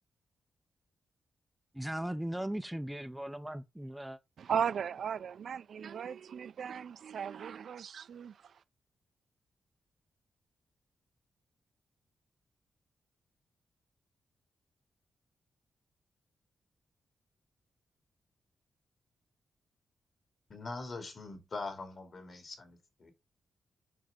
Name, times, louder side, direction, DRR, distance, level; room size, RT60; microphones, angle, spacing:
voice 1, 1.7-4.2, right 1 dB, 5° right, 0.4 m, -38 dB
voice 2, 4.4-8.3, right 8 dB, 70° right, 0.4 m, -36 dB
voice 3, 20.5-23.1, left 3 dB, 45° left, 2.4 m, -42 dB
7.6 x 5.4 x 3.7 m
wide cardioid pair, 125°, 0 cm